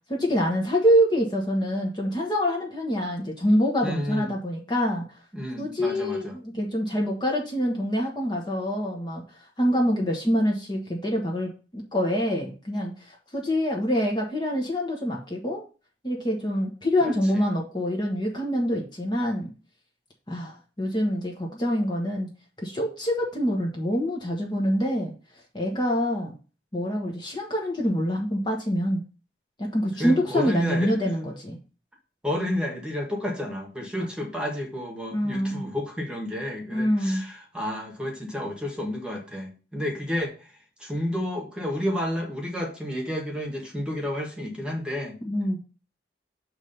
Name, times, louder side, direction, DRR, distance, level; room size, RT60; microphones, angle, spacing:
voice 1, 0.1-5.0 5.6-9.2 9.6-15.6 16.0-19.5 20.3-22.3 22.6-25.1 25.5-26.3 26.7-29.0 29.6-31.6 35.1-35.7 36.7-37.2 45.2-45.6, equal, 25° left, -1 dB, 1.2 m, -25 dB
voice 2, 3.8-4.3 5.3-6.4 17.0-17.4 30.0-30.9 32.2-45.1, left 1 dB, 5° right, 0 dB, 1.4 m, -31 dB
7.3 x 3.3 x 5.4 m, 0.35 s
head